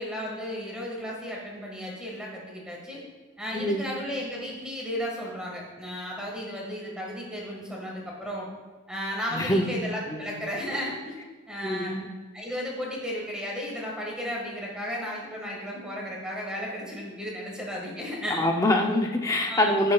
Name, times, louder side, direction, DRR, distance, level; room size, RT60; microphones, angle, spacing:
voice 1, 0.0-3.0 3.4-8.5 8.9-11.1 11.5-12.0 12.3-18.5 19.5-19.8, equal, 5° right, -3 dB, 1.6 m, -34 dB
voice 2, 3.5-3.8 9.3-9.7 10.1-10.3 11.6-12.1 18.4-19.9, left 1 dB, 15° left, 2 dB, 0.5 m, -24 dB
15.0 x 6.4 x 2.3 m, 1.3 s
head